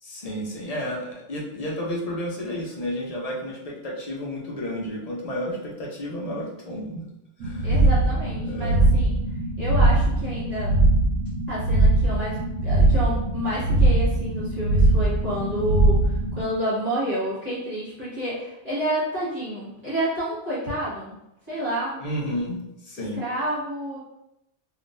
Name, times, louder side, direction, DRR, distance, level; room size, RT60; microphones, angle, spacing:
voice 1, 0.0-7.1 7.4-7.7 8.4-8.8 22.0-22.6 22.8-23.2, equal, 40° left, -3 dB, 0.6 m, -31 dB
sound 1, 7.4-16.5, right 2 dB, 80° right, 0.9 m, -21 dB
voice 2, 7.6-9.1 9.6-10.8 11.5-21.2 21.5-22.0 23.2-24.0, right 1 dB, 35° right, -10 dB, 1.5 m, -29 dB
3.6 x 2.4 x 2.5 m, 0.84 s
omnidirectional pair, 1.3 m